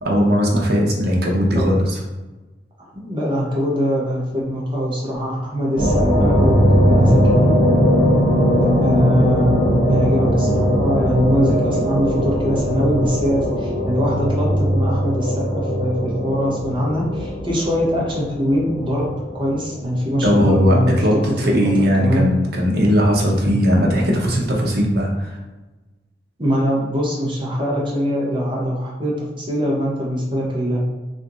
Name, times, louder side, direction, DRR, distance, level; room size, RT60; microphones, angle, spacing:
voice 1, 0.0-2.0 20.2-25.4, equal, 60° right, -1 dB, 0.8 m, -18 dB
voice 2, 2.9-7.5 8.8-19.1 19.3-20.9 21.2-22.3 26.4-30.8, equal, 30° right, -4 dB, 0.7 m, -22 dB
sound 1, 5.8-20.2, equal, 35° left, 0.9 m, -19 dB
2.9 x 2.5 x 3.6 m, 1.1 s
head